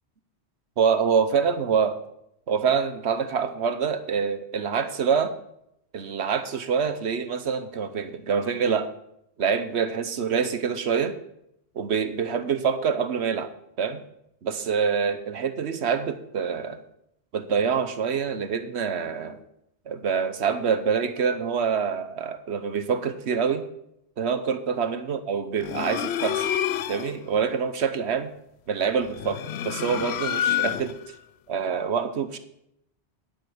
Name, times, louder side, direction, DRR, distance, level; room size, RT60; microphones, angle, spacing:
voice 1, 0.8-2.0 2.5-5.3 5.9-8.9 9.4-11.2 11.7-13.5 13.8-14.0 14.4-16.8 17.3-19.4 19.9-23.6 24.2-26.5 26.9-28.3 28.7-31.0 31.5-32.4, right 6 dB, 85° right, 11 dB, 1.2 m, -26 dB
sound 1, 25.6-27.2 29.1-31.1, left 11 dB, 75° left, 0.8 m, -28 dB
10.5 x 10.0 x 5.0 m, 0.78 s
omnidirectional pair, 1.1 m